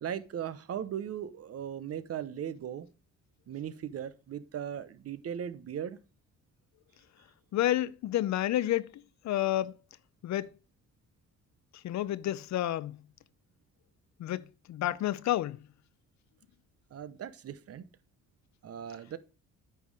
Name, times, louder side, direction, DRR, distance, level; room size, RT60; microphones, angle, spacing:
voice 1, 0.0-2.9 3.5-6.0 16.9-17.9 18.6-19.2, right 9 dB, 50° right, 0.9 m, -38 dB
voice 2, 7.5-9.7 10.2-10.5 11.7-13.0 14.2-15.6, left 13 dB, 65° left, 0.6 m, -30 dB
9.2 x 5.6 x 4.8 m
cardioid pair, 90°, 30 cm